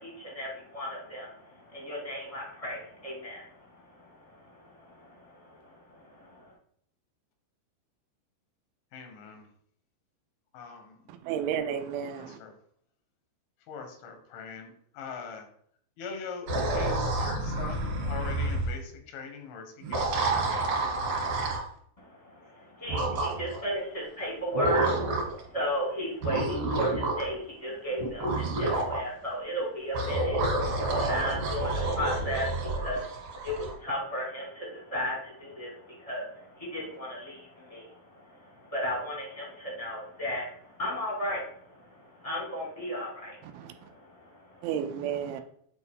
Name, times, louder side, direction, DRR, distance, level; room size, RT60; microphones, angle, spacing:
voice 1, 0.0-6.5 22.0-44.7 45.2-45.4, equal, 15° left, -4 dB, 1.1 m, -36 dB
voice 2, 8.9-9.5 10.5-11.1 12.1-12.5 13.6-15.5 16.0-20.7, left 5 dB, 90° left, 4 dB, 3.8 m, -42 dB
voice 3, 11.2-12.4 43.5-43.7 44.6-45.4, right 8 dB, 85° right, 8 dB, 3.1 m, -32 dB
sound 1, 16.5-18.7 19.8-21.7 22.9-23.6 24.5-25.4 26.2-27.3 28.0-29.0 29.9-33.7, right 2 dB, 50° right, 3.5 m, -29 dB
9.2 x 4.5 x 3.7 m, 0.65 s
omnidirectional pair, 5.4 m